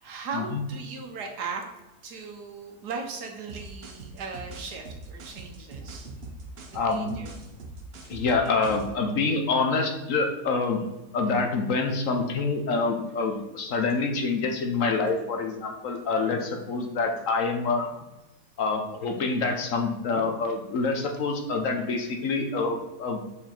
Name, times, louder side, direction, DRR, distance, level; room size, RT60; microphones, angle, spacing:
voice 1, 0.0-1.7 2.0-6.1 6.7-7.3 15.0-15.2, right 4 dB, 85° right, 3 dB, 1.6 m, -38 dB
sound 1, 3.5-9.0, right 3 dB, 50° right, 0.9 m, -42 dB
voice 2, 6.7-7.2 8.1-10.8 11.1-17.9 18.6-23.2, left 4 dB, 60° left, 4 dB, 1.1 m, -26 dB
5.4 x 4.8 x 4.4 m, 1.0 s
omnidirectional pair, 1.7 m